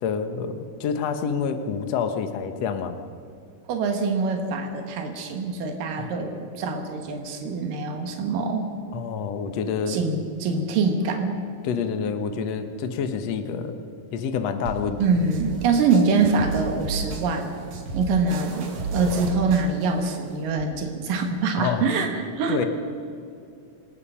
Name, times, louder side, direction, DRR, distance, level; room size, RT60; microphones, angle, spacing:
voice 1, 0.0-3.0 6.0-6.1 8.9-10.0 11.6-13.8 14.1-15.0 21.6-21.9 22.5-22.7, left 6 dB, 60° left, 8 dB, 2.2 m, -27 dB
voice 2, 3.7-8.7 9.9-11.4 15.0-17.5 17.9-22.7, right 4 dB, 90° right, 4 dB, 3.2 m, -24 dB
sound 1, 14.6-20.6, right 3 dB, 60° right, 3.4 m, -34 dB
26.5 x 19.0 x 5.8 m, 2.5 s
omnidirectional pair, 3.8 m